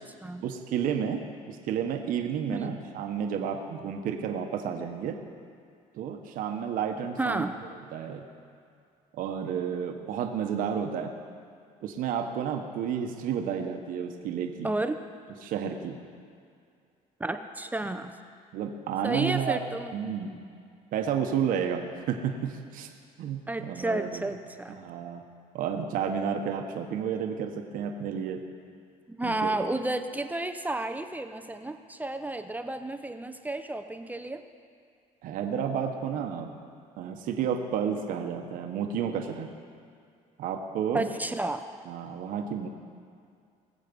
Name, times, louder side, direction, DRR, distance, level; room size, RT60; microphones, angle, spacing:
voice 1, 0.4-1.2 1.5-5.2 5.9-7.4 7.9-8.2 9.1-11.1 11.8-14.7 15.4-16.0 18.5-19.6 19.9-20.4 20.9-22.9 23.2-24.2 24.8-25.2 25.5-28.4 29.2-29.5 35.2-36.5 37.0-39.5 40.4-41.0 41.9-42.7, right 8 dB, 70° right, 4 dB, 1.2 m, -31 dB
voice 2, 2.5-2.8 7.2-7.6 14.6-15.0 17.2-18.2 19.0-19.9 23.5-24.8 29.1-34.4 40.9-41.6, right 2 dB, 10° right, 8 dB, 0.7 m, -32 dB
21.0 x 7.5 x 5.3 m, 2.4 s
cardioid pair, 100°, 15 cm